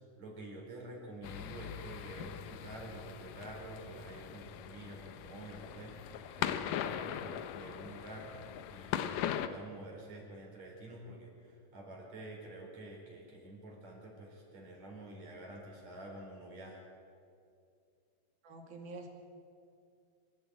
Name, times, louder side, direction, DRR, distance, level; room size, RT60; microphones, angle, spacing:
voice 1, 0.2-8.4 8.7-16.8, right 2 dB, 50° right, -1 dB, 5.7 m, -48 dB
sound 1, 1.2-9.5, left 10 dB, 75° left, 2.3 m, -40 dB
voice 2, 18.4-19.1, right 3 dB, 75° right, 2 dB, 4.4 m, -46 dB
26.5 x 14.5 x 8.9 m, 2.4 s
omnidirectional pair, 4.2 m